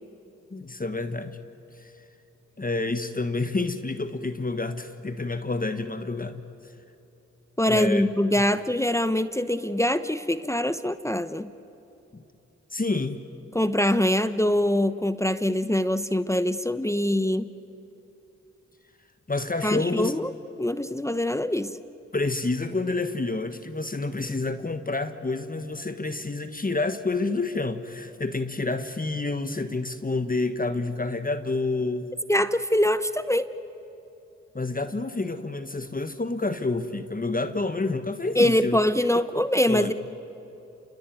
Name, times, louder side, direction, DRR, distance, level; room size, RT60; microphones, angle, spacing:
voice 1, 0.5-1.4 1.8-1.9 2.6-6.4 7.7-8.0 8.4-8.5 12.1-12.2 12.7-13.2 19.3-20.1 22.1-32.1 34.5-38.8 39.7-39.9, left 3 dB, 30° left, 9 dB, 1.5 m, -28 dB
voice 2, 7.6-11.5 13.5-17.5 19.6-20.3 20.6-21.8 32.3-33.5 38.3-39.9, left 1 dB, 10° left, 12 dB, 0.9 m, -24 dB
28.5 x 22.0 x 9.3 m, 3.0 s
supercardioid pair, 45°, 30 cm